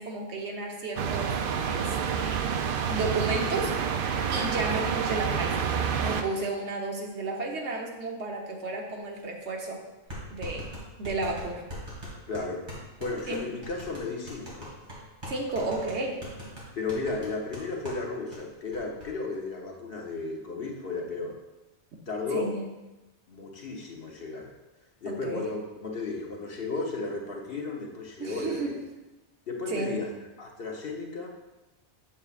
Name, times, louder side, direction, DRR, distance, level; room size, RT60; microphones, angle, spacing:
voice 1, 0.0-1.4 1.7-2.4 2.9-5.7 6.0-9.8 10.3-10.7 11.0-11.6 13.3-13.4 15.3-16.2 22.3-22.6 25.0-25.5 28.2-28.8 29.7-30.0, right 3 dB, 85° right, 0 dB, 1.3 m, -32 dB
sound 1, 1.0-6.2, right 7 dB, 60° right, 0.6 m, -28 dB
sound 2, 9.2-9.3 10.1-18.0 18.3-18.4 18.7-19.1, equal, 45° right, 2.3 m, -41 dB
voice 2, 12.3-12.6 13.0-14.7 16.7-21.4 22.1-22.5 23.3-24.5 25.0-28.8 29.5-30.1 30.4-31.3, left 3 dB, 60° left, 0 dB, 1.2 m, -34 dB
7.1 x 6.7 x 2.4 m, 1.1 s
omnidirectional pair, 1.1 m